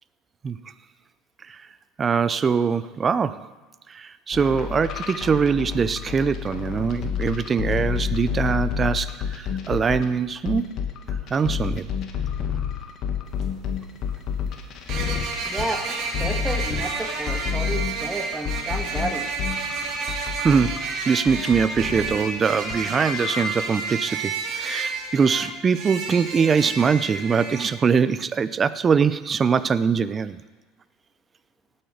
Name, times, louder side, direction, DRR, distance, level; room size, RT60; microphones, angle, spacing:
voice 1, 2.0-3.5 3.9-10.8 11.3-11.9 20.4-30.4, right 6 dB, 30° right, 15 dB, 0.6 m, -22 dB
sound 1, 4.3-10.1 10.5-22.8 23.1-23.5, left 7 dB, 55° left, 1.7 m, -29 dB
sound 2, 13.3-13.4 14.9-27.7, right 4 dB, 55° right, 2.7 m, -31 dB
voice 2, 15.4-15.8 16.2-19.3, right 2 dB, 15° right, 3 dB, 1.6 m, -31 dB
18.0 x 8.7 x 5.1 m, 1.2 s
supercardioid pair, 105°, 0 cm